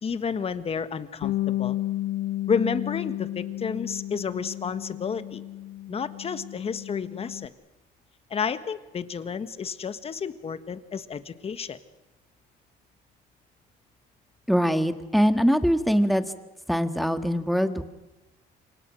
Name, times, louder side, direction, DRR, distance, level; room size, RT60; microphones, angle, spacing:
voice 1, 0.0-1.8 2.5-5.4 5.9-7.5 8.3-11.8, left 6 dB, 35° left, 12 dB, 1.5 m, -31 dB
Bass guitar, 1.2-7.5, left 14 dB, 85° left, 0.8 m, -32 dB
voice 2, 14.5-16.3 16.7-17.8, equal, ahead, 9 dB, 1.7 m, -22 dB
28.0 x 25.5 x 6.4 m, 1.1 s
cardioid pair, 110°, 17 cm